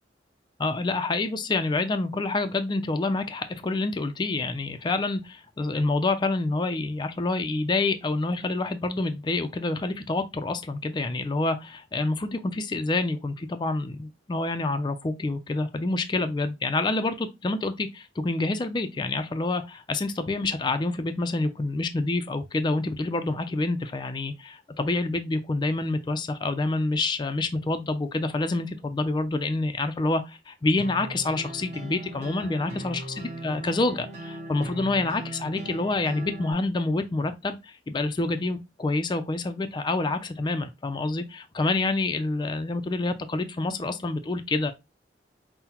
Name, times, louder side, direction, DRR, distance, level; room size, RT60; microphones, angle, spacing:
voice 1, 0.6-44.7, left 2 dB, 25° left, 0.4 m, -27 dB
sound 1, 30.8-36.5, right 1 dB, 40° right, 1.1 m, -39 dB
5.6 x 2.1 x 2.9 m
head